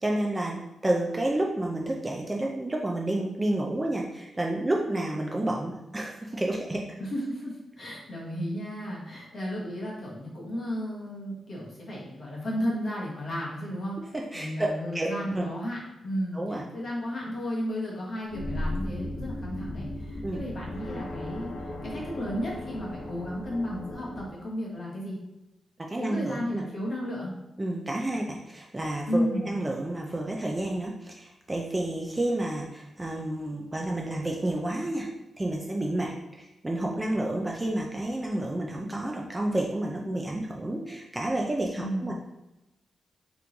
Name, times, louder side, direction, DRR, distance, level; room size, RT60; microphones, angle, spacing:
voice 1, 0.0-6.8 14.0-15.5 16.3-16.7 20.2-20.4 25.8-26.6 27.6-35.1 35.4-42.1, right 1 dB, 15° right, -1 dB, 0.3 m, -30 dB
voice 2, 7.0-14.0 14.3-21.5 21.8-25.2 26.0-27.3 29.1-29.5 41.8-42.1, equal, 40° left, -4 dB, 1.1 m, -33 dB
sound 1, 18.2-24.3, left 1 dB, 80° left, 0.6 m, -36 dB
3.6 x 3.0 x 3.8 m, 0.96 s
wide cardioid pair, 180°, 0 cm